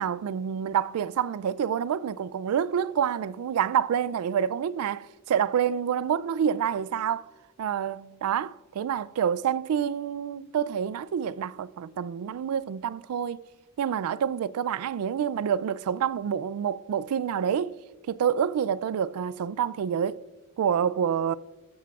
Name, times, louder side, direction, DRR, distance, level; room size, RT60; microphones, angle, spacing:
voice 1, 0.0-7.3 7.6-13.4 13.8-17.8 18.1-20.2 20.6-21.3, right 8 dB, 90° right, 0.3 m, -27 dB
14.5 x 13.0 x 2.4 m
head